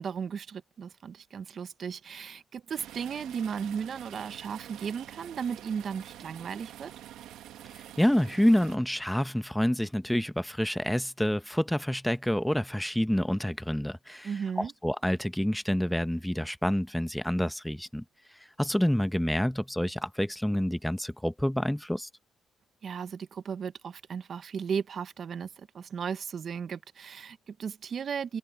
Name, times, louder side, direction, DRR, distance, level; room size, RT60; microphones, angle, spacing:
voice 1, 0.0-6.9 14.2-14.7 22.8-28.4, right 7 dB, 55° right, 0.8 m, -35 dB
sound 1, 2.8-8.8, right 12 dB, 85° right, 1.3 m, -47 dB
voice 2, 7.7-14.3 14.6-18.0 18.6-22.1, equal, 5° left, 0.9 m, -28 dB
cardioid pair, 90°, 0 cm